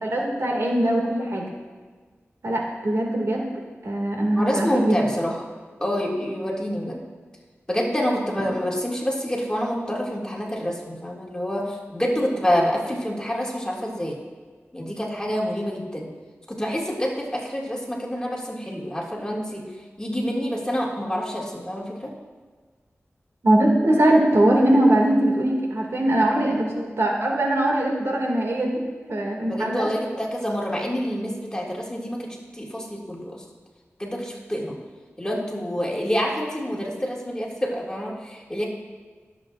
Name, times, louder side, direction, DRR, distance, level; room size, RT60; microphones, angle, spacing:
voice 1, 0.0-1.5 2.4-3.5 3.8-5.0 23.4-28.8 29.1-29.9, right 1 dB, 75° right, -1 dB, 2.2 m, -21 dB
voice 2, 4.4-5.5 5.8-7.0 7.7-14.2 14.7-16.1 16.5-19.6 20.0-22.1 29.4-33.4 34.0-34.8 35.2-38.6, equal, 15° left, -3 dB, 2.2 m, -27 dB
22.5 x 7.5 x 2.5 m, 1.4 s
wide cardioid pair, 75°, 5 cm